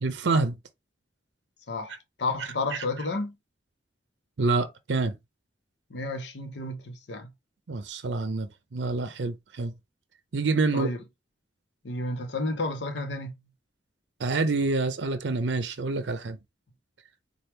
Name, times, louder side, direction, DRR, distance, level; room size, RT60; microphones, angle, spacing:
voice 1, 0.0-0.6 2.7-2.8 4.4-5.1 7.7-9.7 10.3-10.9 14.2-16.4, right 3 dB, 75° right, 0.6 m, -27 dB
voice 2, 1.7-3.4 5.9-7.3 10.7-11.0 11.8-13.4, left 2 dB, 80° left, 0.8 m, -31 dB
4.4 x 2.3 x 3.4 m
head